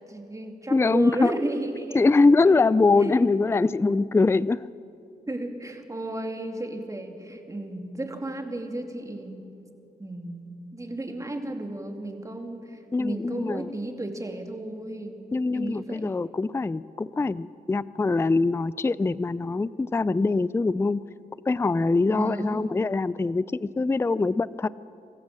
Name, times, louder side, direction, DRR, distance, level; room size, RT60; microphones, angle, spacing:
voice 1, 0.1-2.0 2.4-2.6 3.0-3.1 5.3-9.5 10.0-15.3 15.5-16.1 22.1-22.7, right 2 dB, 20° right, 4 dB, 2.7 m, -33 dB
voice 2, 0.7-1.3 1.9-4.7 12.9-13.7 15.3-21.0 21.5-24.7, left 3 dB, 15° left, 19 dB, 0.4 m, -23 dB
24.5 x 15.0 x 7.5 m, 2.6 s
cardioid pair, 60°, 17 cm